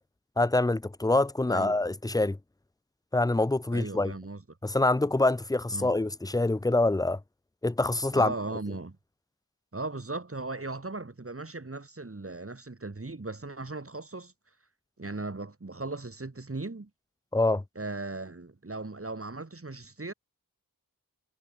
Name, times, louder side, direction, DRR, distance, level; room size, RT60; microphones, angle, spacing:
voice 1, 0.4-2.4 3.1-4.1 4.6-7.2 7.6-8.3 17.3-17.6, left 2 dB, 10° left, 0.6 m, -25 dB
voice 2, 3.7-4.4 5.7-6.0 8.1-9.0 9.7-14.3 15.0-16.9 17.7-20.1, right 3 dB, 40° right, 2.9 m, -37 dB
wide cardioid pair, 45°, 36 cm